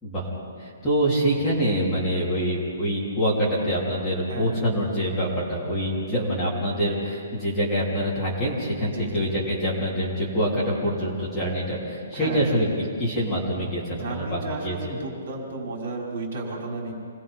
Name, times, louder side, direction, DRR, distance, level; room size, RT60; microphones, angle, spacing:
voice 1, 0.6-12.7 13.0-14.8, equal, 5° left, -10 dB, 3.5 m, -25 dB
voice 2, 4.3-4.6 8.9-9.4 12.1-12.6 13.9-16.9, right 2 dB, 50° right, -1 dB, 5.6 m, -33 dB
28.5 x 21.0 x 5.5 m, 2.3 s
hypercardioid pair, 175°, 0 cm